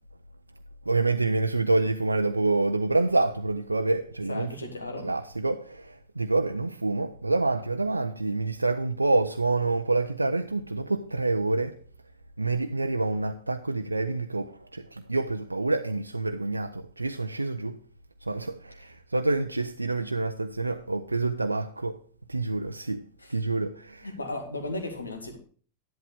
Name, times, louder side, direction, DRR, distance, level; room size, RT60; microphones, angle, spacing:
voice 1, 0.9-4.5 5.0-11.8 12.4-17.8 18.2-22.0 22.3-23.0 23.3-24.1, right 2 dB, 85° right, 0.5 m, -27 dB
voice 2, 4.3-5.1 23.2-23.3 24.0-25.4, left 2 dB, 80° left, 2.1 m, -35 dB
11.0 x 11.0 x 3.4 m
figure-of-eight pair, 90°, 0 cm